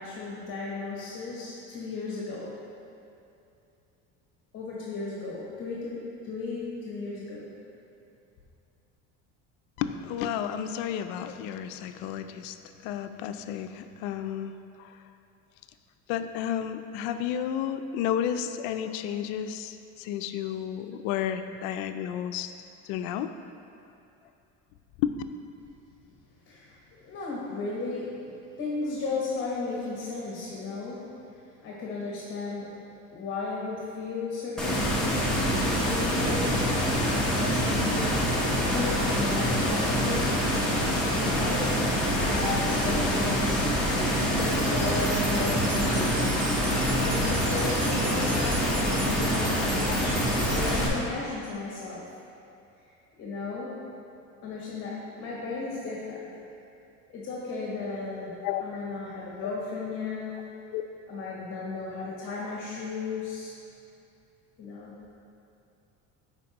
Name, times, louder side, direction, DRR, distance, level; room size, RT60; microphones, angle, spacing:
voice 1, 0.0-2.5 4.5-7.5 26.5-32.8 33.1-36.7 37.3-40.5 41.2-41.8 42.2-43.7 44.1-46.5 47.0-49.6 50.5-52.1 53.2-53.8 54.4-56.3 57.1-58.3 58.6-60.4 61.1-63.5 64.6-64.9, left 3 dB, 40° left, -4 dB, 1.1 m, -35 dB
voice 2, 9.8-12.6 12.8-14.5 14.8-15.0 16.1-22.5 22.8-23.3 25.0-25.1 49.9-50.0 58.4-58.6 59.4-59.5 60.7-60.8, left 9 dB, 85° left, 9 dB, 0.5 m, -32 dB
sound 1, 34.6-50.9, equal, ahead, 0.9 m, -25 dB
sound 2, 44.4-50.7, right 4 dB, 65° right, 0.9 m, -38 dB
10.5 x 4.3 x 2.9 m, 2.7 s
cardioid pair, 150°, 33 cm